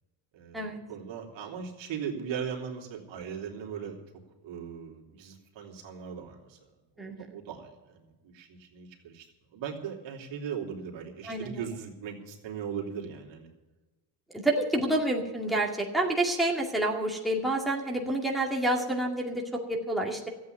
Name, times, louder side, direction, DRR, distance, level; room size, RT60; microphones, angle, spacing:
voice 1, 0.3-4.0 4.4-6.6 7.0-13.5, right 7 dB, 60° right, 0 dB, 3.1 m, -39 dB
voice 2, 11.3-11.6 14.3-19.4 19.7-20.3, right 1 dB, ahead, -2 dB, 2.2 m, -28 dB
13.5 x 8.6 x 9.4 m, 1.2 s
cardioid pair, 110°, 49 cm